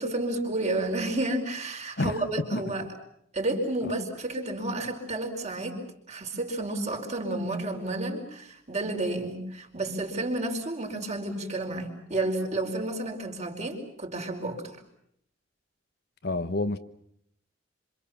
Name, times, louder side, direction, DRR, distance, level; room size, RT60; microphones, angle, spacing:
voice 1, 0.0-2.9 3.3-5.8 6.1-14.6, right 2 dB, 35° right, 3 dB, 4.8 m, -31 dB
voice 2, 16.2-16.8, left 2 dB, 55° left, 11 dB, 1.2 m, -28 dB
27.0 x 27.0 x 7.1 m, 0.71 s
head